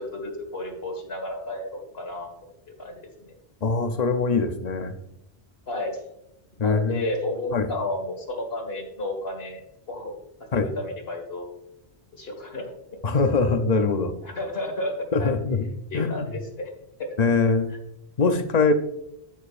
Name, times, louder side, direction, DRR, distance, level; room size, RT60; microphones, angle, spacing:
voice 1, 0.0-2.5 2.8-3.3 5.7-6.0 6.6-9.6 9.9-10.1 10.5-11.5 12.1-12.7 14.2-14.9 15.2-16.7, left 1 dB, 65° left, 2 dB, 1.9 m, -32 dB
voice 2, 3.6-4.9 6.6-7.1 7.5-7.7 10.5-10.7 13.0-14.1 15.1-15.7 15.9-16.3 17.2-17.7 18.2-18.7, left 4 dB, 45° left, 8 dB, 0.7 m, -22 dB
9.2 x 8.7 x 2.5 m, 0.83 s
omnidirectional pair, 1.1 m